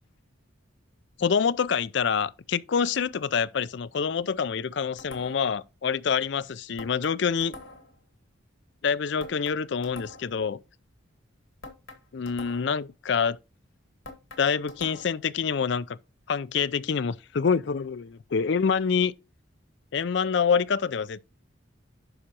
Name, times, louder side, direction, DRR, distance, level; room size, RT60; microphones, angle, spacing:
voice 1, 1.2-7.5 8.8-10.6 12.1-13.4 14.4-16.0 16.3-19.1 19.9-21.2, left 6 dB, 60° left, 0.4 m, -26 dB
sound 1, 5.0-5.6 6.8-8.0 9.2-10.4 11.6-12.8 14.0-15.3, left 2 dB, 80° left, 2.0 m, -45 dB
9.7 x 6.3 x 2.9 m
head